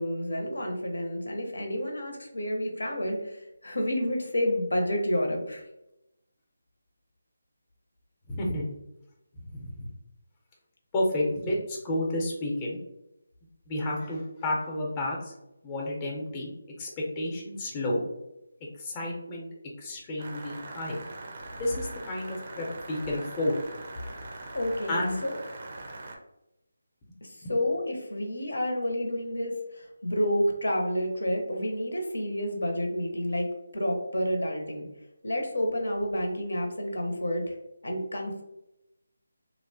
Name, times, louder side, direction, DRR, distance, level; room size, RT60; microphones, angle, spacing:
voice 1, 0.0-5.6 24.1-24.2 24.5-25.4 27.2-33.5 33.7-34.9 35.2-37.5 37.8-38.4, equal, 80° left, 2 dB, 0.6 m, -29 dB
voice 2, 8.3-8.7 9.5-9.9 10.9-12.8 13.7-15.3 15.6-16.5 16.8-18.0 18.8-19.5 19.8-21.0 21.6-23.6 24.9-25.2 27.4-27.5, left 1 dB, 20° left, -2 dB, 0.6 m, -31 dB
sound 1, 20.2-26.2, right 2 dB, 45° right, 0.4 m, -42 dB
2.8 x 2.1 x 2.7 m, 0.90 s
figure-of-eight pair, 160°, 0 cm